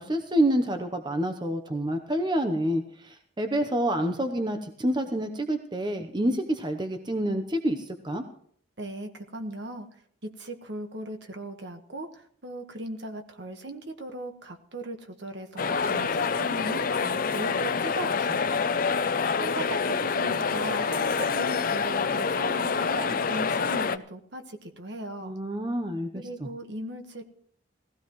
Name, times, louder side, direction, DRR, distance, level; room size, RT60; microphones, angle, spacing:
voice 1, 0.0-8.2 25.2-26.2, right 1 dB, 25° right, 6 dB, 0.8 m, -28 dB
voice 2, 8.8-18.5 19.4-25.4 26.1-27.2, right 1 dB, 60° right, 5 dB, 1.4 m, -38 dB
sound 1, 15.6-24.0, left 5 dB, 45° left, 0.5 m, -27 dB
18.5 x 15.5 x 3.1 m, 0.62 s
head